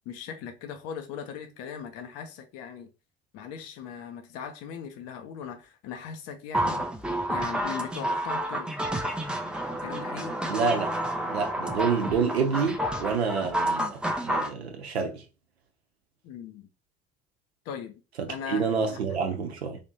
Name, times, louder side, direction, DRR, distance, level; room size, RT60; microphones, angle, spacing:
voice 1, 0.1-2.9 3.3-6.8 7.3-8.7 9.8-10.4 16.2-16.7 17.6-18.0 18.3-18.7, left 7 dB, 50° left, 0.6 m, -39 dB
sound 1, 6.5-14.5, right 1 dB, 5° right, 0.4 m, -30 dB
voice 2, 10.4-10.9 11.3-15.2 18.2-19.8, right 5 dB, 80° right, 0.7 m, -28 dB
3.4 x 2.6 x 2.7 m
figure-of-eight pair, 55°, 32 cm